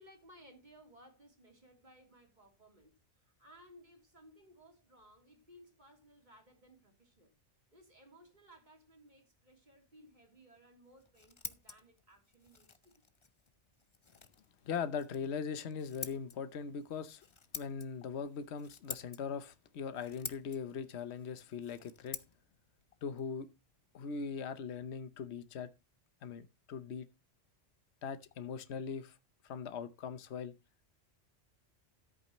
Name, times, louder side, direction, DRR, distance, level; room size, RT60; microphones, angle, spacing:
voice 1, 0.0-7.3 7.7-13.0, equal, 40° right, 3.1 m, -61 dB
Scissors, 10.8-24.4, left 4 dB, 30° left, 0.7 m, -51 dB
voice 2, 14.6-17.3 17.5-22.2 23.0-23.5 23.9-25.7 26.2-27.1 28.0-29.2 29.4-30.5, left 6 dB, 65° left, 1.1 m, -40 dB
13.5 x 8.5 x 3.0 m
omnidirectional pair, 1.2 m